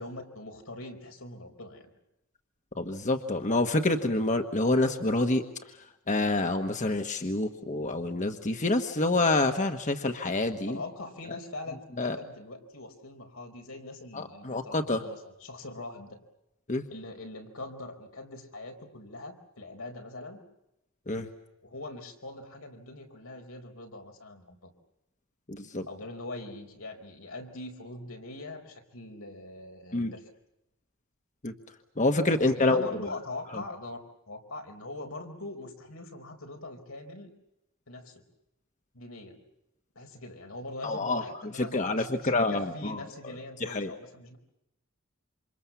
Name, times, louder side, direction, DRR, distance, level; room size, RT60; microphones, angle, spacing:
voice 1, 0.0-1.9 10.7-16.2 16.9-20.4 21.6-24.7 25.9-30.2 32.4-34.0 34.3-37.3 37.9-38.2 38.9-39.4 39.9-44.4, left 2 dB, 85° left, 3 dB, 4.5 m, -42 dB
voice 2, 2.8-5.4 6.1-10.8 12.0-12.2 14.1-15.0 16.7-16.8 21.1-21.3 25.5-25.9 29.9-30.1 31.4-31.5 32.0-32.8 33.5-33.6 40.8-41.2 41.7-43.0 43.6-43.9, left 2 dB, 35° left, 6 dB, 1.4 m, -27 dB
28.5 x 26.0 x 7.2 m, 0.88 s
head